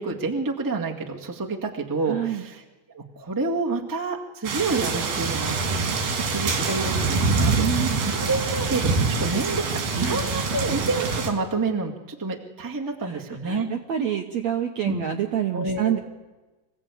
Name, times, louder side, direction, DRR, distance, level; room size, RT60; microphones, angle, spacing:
voice 1, 0.0-2.6 2.9-5.6 5.9-7.7 8.1-13.7 14.8-15.1 15.5-16.0, right 3 dB, 25° right, -1 dB, 0.4 m, -28 dB
voice 2, 2.1-2.4 7.6-8.1 10.0-10.4 13.0-16.0, right 10 dB, 75° right, 4 dB, 1.6 m, -27 dB
sound 1, 4.4-11.3, right 4 dB, 90° right, 4.8 m, -25 dB
25.5 x 16.0 x 8.5 m, 1.2 s
omnidirectional pair, 4.4 m